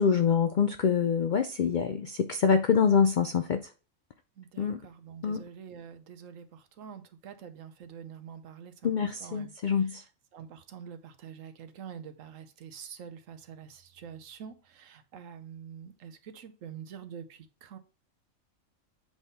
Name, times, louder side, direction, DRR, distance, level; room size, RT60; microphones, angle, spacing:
voice 1, 0.0-3.7 4.6-4.8 5.2-5.4 8.8-10.0, left 6 dB, 90° left, 0.4 m, -25 dB
voice 2, 4.4-8.9 9.2-17.8, right 8 dB, 70° right, 1.1 m, -46 dB
7.9 x 3.6 x 4.0 m
omnidirectional pair, 1.4 m